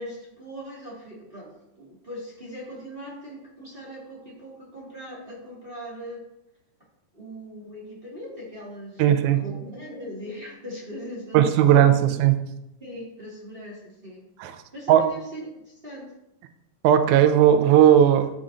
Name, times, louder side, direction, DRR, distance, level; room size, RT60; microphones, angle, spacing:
voice 1, 0.0-6.2 7.1-12.2 12.8-16.1, equal, 25° right, -6 dB, 1.4 m, -40 dB
voice 2, 9.0-9.4 11.3-12.3 14.4-14.5 14.9-15.1 16.8-18.3, right 10 dB, 80° right, 8 dB, 1.8 m, -17 dB
13.0 x 5.0 x 2.6 m, 0.86 s
omnidirectional pair, 4.0 m